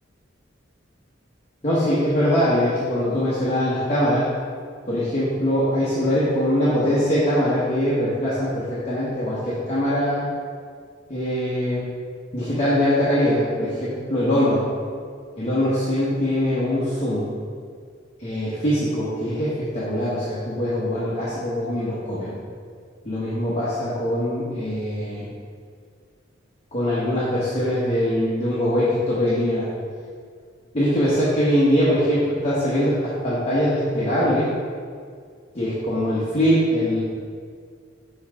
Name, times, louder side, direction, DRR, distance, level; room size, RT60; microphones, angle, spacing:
voice 1, 1.6-4.3 4.8-10.3 11.1-11.8 12.3-14.6 15.4-17.3 18.2-22.3 23.0-25.2 26.7-29.7 30.7-34.5 35.5-37.0, equal, 35° left, -9 dB, 1.1 m, -22 dB
7.1 x 4.5 x 3.6 m, 2.1 s
head